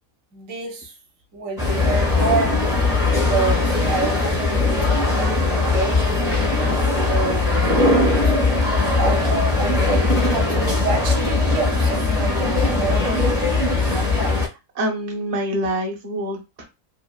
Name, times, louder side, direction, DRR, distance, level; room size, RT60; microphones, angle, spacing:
voice 1, 0.3-0.9 1.3-2.6 3.1-6.4 7.1-7.7 8.2-8.3 8.7-13.5, right 4 dB, 65° right, 1.0 m, -28 dB
sound 1, 1.6-14.5, left 3 dB, 5° right, 0.7 m, -19 dB
voice 2, 14.7-16.6, right 1 dB, 40° right, 0.6 m, -26 dB
3.0 x 2.5 x 2.2 m
omnidirectional pair, 1.6 m